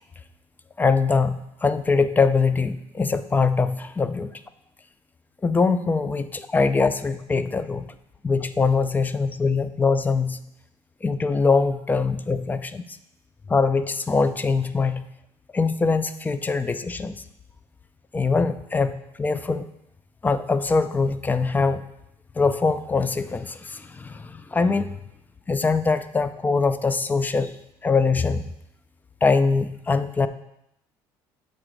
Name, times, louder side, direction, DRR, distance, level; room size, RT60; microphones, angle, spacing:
voice 1, 0.8-4.3 5.4-7.9 8.2-10.4 11.0-13.0 13.5-15.0 15.5-17.2 18.1-19.7 20.2-21.8 22.4-24.9 25.5-27.5 27.8-28.5 29.2-30.3, left 4 dB, 20° left, 12 dB, 0.4 m, -23 dB
7.3 x 4.0 x 4.9 m, 0.80 s
supercardioid pair, 95°, 9 cm